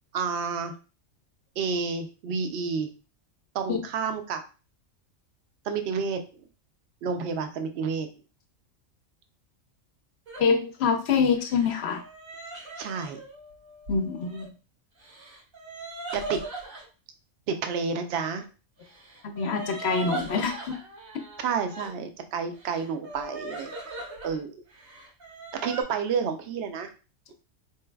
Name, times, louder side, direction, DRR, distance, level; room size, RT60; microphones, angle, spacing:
voice 1, 0.1-0.7 1.6-2.9 3.5-4.4 5.6-6.4 7.0-8.1 12.8-13.2 16.1-16.4 17.5-18.5 21.4-23.7 24.2-24.5 25.6-26.9, right 5 dB, 65° right, 7 dB, 0.8 m, -30 dB
sound 1, 10.3-10.5 11.3-14.5 15.0-16.9 18.8-21.9 22.5-24.4 24.7-25.8, right 3 dB, 85° right, 1.6 m, -40 dB
voice 2, 10.4-12.0 13.9-14.5 19.2-20.7, left 5 dB, 65° left, 6 dB, 0.8 m, -25 dB
4.1 x 3.2 x 2.2 m, 0.34 s
omnidirectional pair, 1.4 m